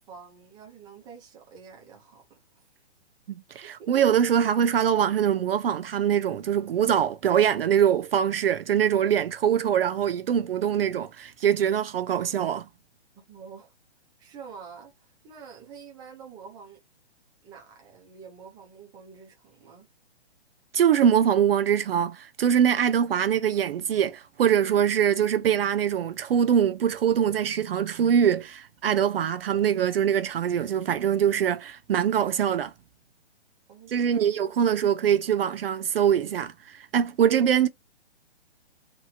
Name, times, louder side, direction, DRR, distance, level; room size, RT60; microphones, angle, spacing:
voice 1, 0.1-2.4 3.6-3.9 13.3-13.7 14.2-16.8 17.4-19.9 33.7-34.3, right 6 dB, 15° right, 0.7 m, -47 dB
voice 2, 3.3-12.7 20.7-32.7 33.9-37.7, right 9 dB, 60° right, 0.5 m, -23 dB
2.9 x 2.7 x 2.3 m
hypercardioid pair, 155°, 33 cm